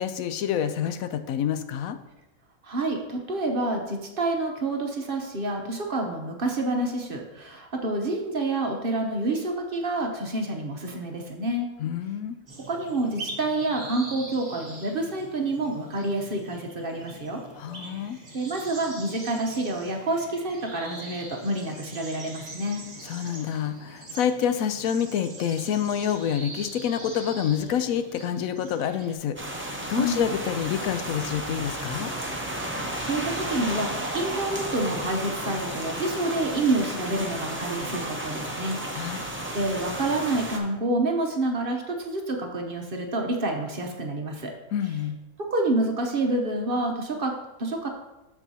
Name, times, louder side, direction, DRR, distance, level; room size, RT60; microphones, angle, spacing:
voice 1, 0.0-2.0 11.8-12.4 17.6-18.2 23.1-32.1 38.9-39.2 44.7-45.2, left 9 dB, 85° left, 10 dB, 1.0 m, -28 dB
voice 2, 2.6-11.7 12.7-17.4 17.8-18.0 18.3-22.8 30.0-30.3 33.0-44.5 45.4-47.9, right 2 dB, 45° right, 2 dB, 1.0 m, -28 dB
sound 1, 12.5-29.2, right 2 dB, 30° right, 1.3 m, -43 dB
sound 2, 29.4-40.6, right 1 dB, 15° right, 0.6 m, -33 dB
13.5 x 4.6 x 2.8 m, 1.0 s
omnidirectional pair, 1.4 m